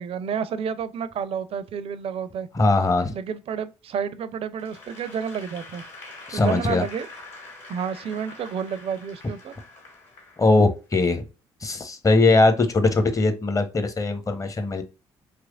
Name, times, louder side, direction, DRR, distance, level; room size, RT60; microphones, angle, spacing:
voice 1, 0.0-2.5 3.1-5.8 6.3-7.1 7.7-9.6, right 7 dB, 50° right, 0.4 m, -30 dB
voice 2, 2.5-3.1 6.3-6.8 10.4-11.2 11.6-14.8, left 3 dB, 25° left, 0.8 m, -20 dB
Applause / Crowd, 4.6-10.8, left 3 dB, 55° left, 1.8 m, -44 dB
3.4 x 3.0 x 2.3 m
figure-of-eight pair, 45°, 13 cm